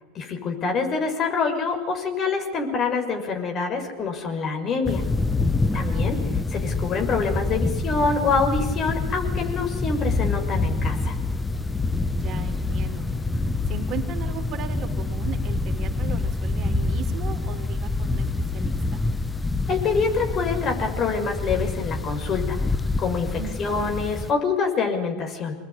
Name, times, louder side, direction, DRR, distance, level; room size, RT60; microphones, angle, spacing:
voice 1, 0.1-5.0 5.7-6.2 6.5-11.2 19.7-22.6 23.0-25.5, left 4 dB, 40° left, 4 dB, 6.4 m, -26 dB
sound 1, 4.9-24.3, left 3 dB, 15° left, 1.2 m, -26 dB
voice 2, 5.7-6.2 12.2-13.1 13.7-18.3 18.5-19.0 23.4-23.8, right 8 dB, 45° right, 4 dB, 4.0 m, -37 dB
26.0 x 20.5 x 10.0 m, 1.1 s
hypercardioid pair, 85°, 0 cm